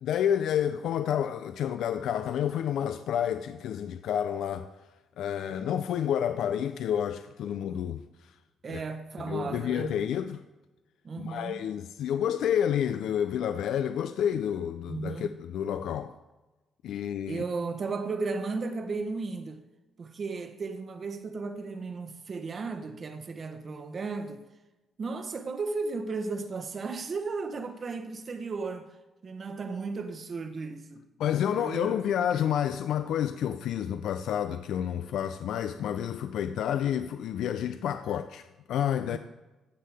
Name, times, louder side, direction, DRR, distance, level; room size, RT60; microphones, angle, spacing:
voice 1, 0.0-4.7 5.2-8.0 8.7-8.8 9.2-10.4 11.2-16.1 16.8-17.4 31.2-39.2, left 9 dB, 80° left, 0.4 m, -29 dB
voice 2, 8.6-10.1 11.0-11.6 14.9-15.4 16.9-17.0 17.3-19.6 20.0-24.4 25.0-28.9 29.2-31.0 31.5-32.0 39.1-39.2, right 4 dB, 45° right, 0.9 m, -35 dB
15.0 x 6.5 x 3.5 m
cardioid pair, 90°, 0 cm